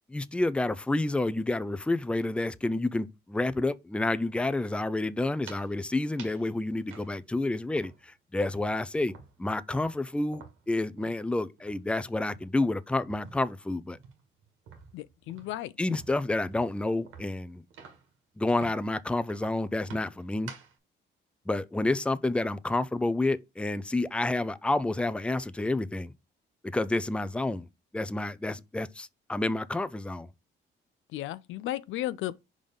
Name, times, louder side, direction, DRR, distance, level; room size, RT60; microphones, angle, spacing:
voice 1, 0.1-9.1 9.4-14.0 15.8-17.6 18.4-20.5 21.5-26.1 26.6-27.7 27.9-30.3, left 2 dB, 5° left, 0.5 m, -29 dB
sound 1, 5.5-5.7 6.2-6.5 6.9-8.2 8.4-11.3 11.6-11.8 12.2-13.6 13.9-18.2 18.6-18.9 19.3-20.8, right 6 dB, 85° right, 1.9 m, -50 dB
voice 2, 14.9-15.7 31.1-32.4, left 14 dB, 85° left, 0.5 m, -34 dB
5.1 x 3.7 x 5.4 m
cardioid pair, 90°, 20 cm